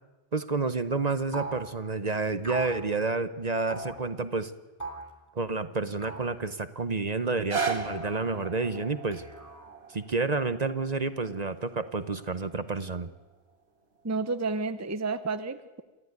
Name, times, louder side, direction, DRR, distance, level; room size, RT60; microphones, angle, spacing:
voice 1, 0.3-4.5 5.3-9.2 9.9-13.1, right 3 dB, 40° right, 12 dB, 1.0 m, -29 dB
sound 1, 1.3-1.7 2.4-2.8 3.7-4.0 4.8-5.1 6.0-6.3 7.7-8.3 9.1-9.8, right 2 dB, 15° left, 3.0 m, -39 dB
sound 2, 7.2-13.3 14.0-14.1, right 5 dB, 75° right, 2.6 m, -38 dB
voice 2, 14.0-15.8, right 3 dB, 15° right, 11 dB, 0.7 m, -31 dB
28.0 x 14.0 x 9.6 m, 1.2 s
omnidirectional pair, 1.1 m